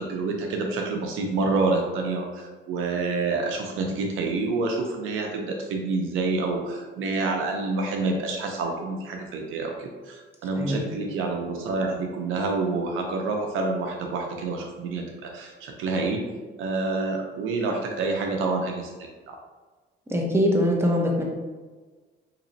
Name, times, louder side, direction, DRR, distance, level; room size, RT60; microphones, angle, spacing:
voice 1, 0.0-16.2 16.6-19.4, right 3 dB, 90° right, 2 dB, 0.6 m, -28 dB
voice 2, 20.1-21.2, equal, 10° right, -1 dB, 0.8 m, -22 dB
4.0 x 3.0 x 2.7 m, 1.3 s
cardioid pair, 90°, 20 cm